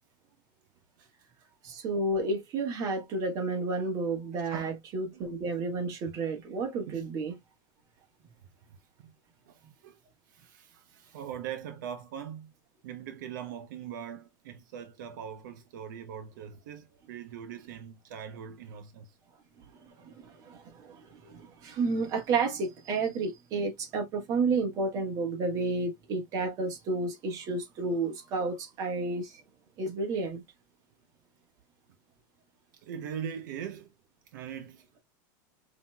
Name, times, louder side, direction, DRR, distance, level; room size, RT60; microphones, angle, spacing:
voice 1, 1.6-7.4 20.0-29.4 29.8-30.4, right 3 dB, 35° right, 1.4 m, -31 dB
voice 2, 4.3-4.7 5.1-5.3 6.1-6.2 6.9-7.0 8.0-8.1 8.7-9.1 9.5-10.0 10.3-12.5 12.8-19.2 32.7-33.9 34.3-34.9, right 8 dB, 70° right, 0.7 m, -41 dB
5.5 x 3.0 x 2.2 m
supercardioid pair, 155°, 10 cm